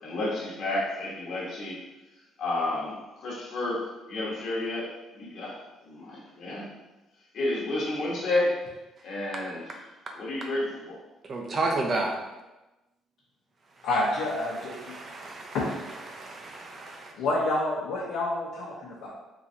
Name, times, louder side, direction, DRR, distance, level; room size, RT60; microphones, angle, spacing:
voice 1, 0.0-1.8 2.4-5.6 5.8-6.7 7.3-8.6 9.0-9.6 10.2-11.0, left 2 dB, 60° left, -6 dB, 1.1 m, -31 dB
voice 2, 11.3-12.2 14.7-15.6 16.1-17.1, right 2 dB, 35° right, 1 dB, 0.6 m, -31 dB
voice 3, 13.8-14.9 15.5-15.8 17.1-19.1, left 2 dB, 85° left, -7 dB, 0.8 m, -28 dB
3.9 x 3.0 x 2.7 m, 1.0 s
cardioid pair, 125°, 0 cm